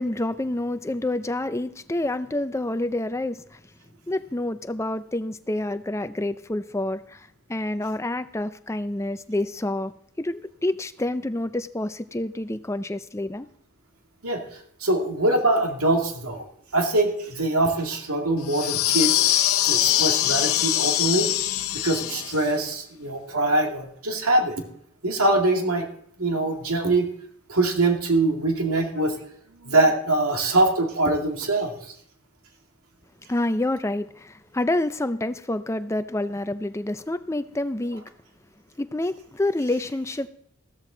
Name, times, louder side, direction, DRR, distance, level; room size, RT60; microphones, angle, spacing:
voice 1, 0.0-3.6 4.1-13.5 33.3-38.0 38.8-40.3, left 1 dB, 15° left, 11 dB, 0.4 m, -28 dB
voice 2, 14.8-16.4 16.7-21.3 21.7-24.6 25.0-25.9 26.2-27.1 27.5-29.1 29.6-31.7, right 2 dB, 85° right, 3 dB, 2.1 m, -23 dB
sound 1, 18.5-22.5, left 13 dB, 80° left, 0.7 m, -23 dB
14.5 x 13.5 x 3.9 m, 0.68 s
head